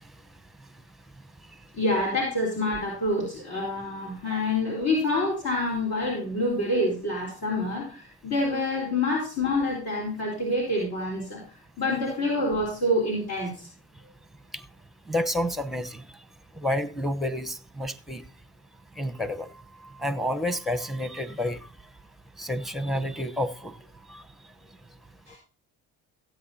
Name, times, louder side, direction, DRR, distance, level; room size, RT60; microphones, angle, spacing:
voice 1, 1.7-11.4 11.8-13.7 25.3-25.4, left 1 dB, 60° left, 4.0 m, -27 dB
voice 2, 15.1-16.1 16.6-18.2 19.0-19.5 20.0-21.6 22.4-23.8 24.1-24.2, left 1 dB, ahead, 0.9 m, -29 dB
16.5 x 8.3 x 2.8 m
supercardioid pair, 65°, 45 cm